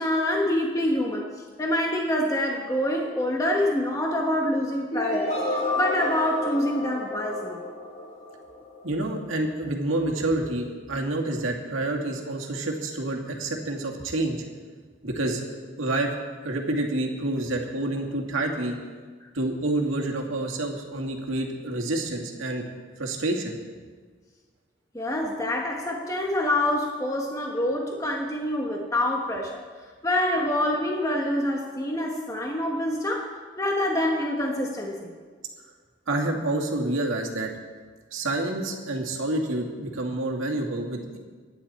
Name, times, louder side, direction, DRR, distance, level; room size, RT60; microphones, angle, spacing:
voice 1, 0.0-5.4 5.8-7.6 24.9-29.6 30.0-35.1, left 1 dB, 15° left, 0 dB, 1.3 m, -26 dB
sound 1, 4.9-8.8, left 2 dB, 35° left, 3.3 m, -30 dB
voice 2, 8.8-14.4 15.0-15.4 15.8-16.1 16.4-18.8 19.3-22.7 23.0-23.5 36.1-37.5 38.1-41.2, right 2 dB, 90° right, 1 dB, 2.4 m, -28 dB
24.5 x 10.5 x 4.4 m, 1.5 s
head